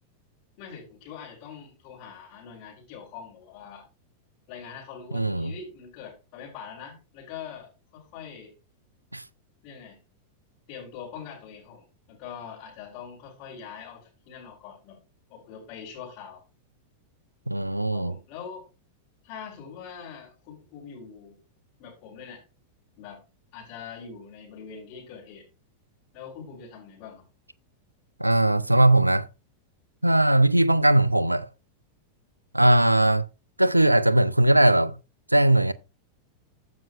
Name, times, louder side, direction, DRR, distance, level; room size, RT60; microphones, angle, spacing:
voice 1, 0.6-3.9 4.5-8.5 9.6-10.0 10.7-15.0 15.3-16.4 17.9-18.7 19.2-21.4 21.8-22.4 23.0-23.2 23.5-25.5 26.1-27.2, left 7 dB, 40° left, 3.8 m, -43 dB
voice 2, 5.1-5.5 9.1-9.2 17.5-18.1 28.2-29.3 30.0-31.5 32.5-33.3 33.6-35.0 35.3-35.7, right 1 dB, 85° right, 0.4 m, -19 dB
15.0 x 5.6 x 2.5 m
figure-of-eight pair, 90°, 0 cm